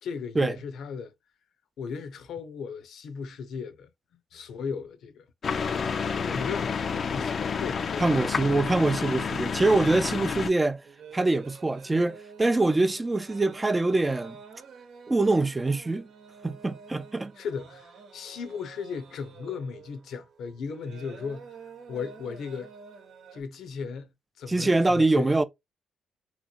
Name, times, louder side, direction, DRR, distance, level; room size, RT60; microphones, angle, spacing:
voice 1, 0.0-1.1 1.8-3.9 4.3-5.3 5.9-8.4 17.4-21.5 21.9-22.7 23.3-24.1 24.4-25.4, left 6 dB, 70° left, 0.7 m, -36 dB
sound 1, 5.4-10.5, left 6 dB, 45° left, 0.5 m, -29 dB
voice 2, 8.0-10.8 11.1-14.4 15.1-16.1 16.4-17.3 24.5-25.4, right 2 dB, 15° right, 0.4 m, -24 dB
sound 2, 9.2-23.4, right 5 dB, 65° right, 0.9 m, -49 dB
3.6 x 3.0 x 2.4 m
cardioid pair, 90°, 0 cm